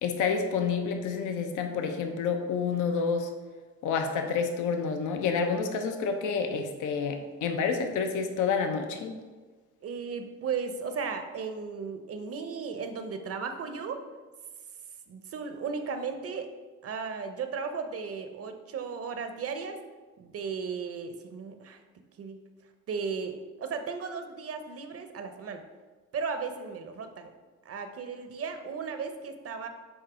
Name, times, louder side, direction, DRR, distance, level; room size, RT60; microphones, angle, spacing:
voice 1, 0.0-3.3 3.8-9.2, left 5 dB, 85° left, 5 dB, 0.7 m, -29 dB
voice 2, 9.8-14.0 15.1-16.5 16.8-19.8 20.2-21.8 22.2-22.4 22.9-25.6 26.1-27.3 27.7-29.7, right 5 dB, 50° right, 7 dB, 0.7 m, -35 dB
7.2 x 2.7 x 5.0 m, 1.3 s
cardioid pair, 90°, 30 cm